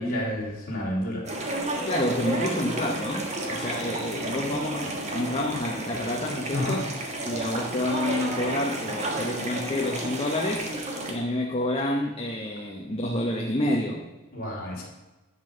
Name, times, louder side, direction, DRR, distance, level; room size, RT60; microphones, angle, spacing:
voice 1, 0.0-1.6 6.5-6.8 14.3-14.8, left 1 dB, 40° left, -3 dB, 3.3 m, -30 dB
sound 1, 1.3-11.1, right 1 dB, 30° right, 1.5 m, -32 dB
voice 2, 1.8-6.9 7.2-10.7 11.1-14.1, left 1 dB, 25° left, 0 dB, 0.8 m, -29 dB
11.5 x 5.5 x 6.6 m, 1.1 s
head